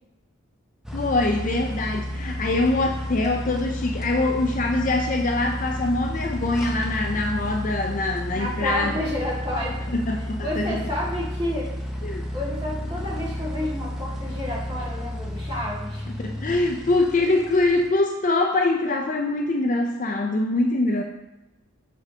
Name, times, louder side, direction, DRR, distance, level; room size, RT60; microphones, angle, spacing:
sound 1, 0.8-17.9, equal, 5° right, 0.6 m, -32 dB
voice 1, 0.9-8.9 9.9-10.8 12.0-12.2 16.1-21.0, left 2 dB, 35° left, 2 dB, 0.4 m, -24 dB
voice 2, 8.3-9.8 10.4-11.7 12.3-16.1, left 1 dB, 25° right, -7 dB, 2.0 m, -30 dB
6.2 x 6.1 x 2.8 m, 0.98 s
head